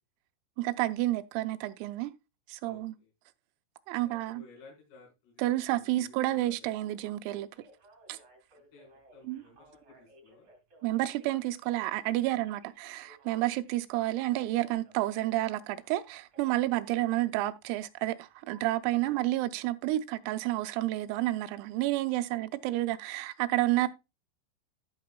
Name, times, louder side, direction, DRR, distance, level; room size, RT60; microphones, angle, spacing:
voice 1, 0.6-2.1 2.5-2.9 3.9-4.4 5.4-7.5 8.1-8.2 9.2-9.4 10.8-23.9, right 16 dB, 90° right, 3.4 m, -30 dB
voice 2, 2.6-3.1 4.0-7.1 8.7-10.5 12.3-12.5 16.7-17.0 19.0-19.2 22.3-22.9, left 3 dB, 80° left, 6.8 m, -57 dB
Telephone, 7.3-16.9 18.5-18.6, right 2 dB, 40° right, 2.0 m, -59 dB
14.0 x 6.0 x 2.2 m
omnidirectional pair, 5.9 m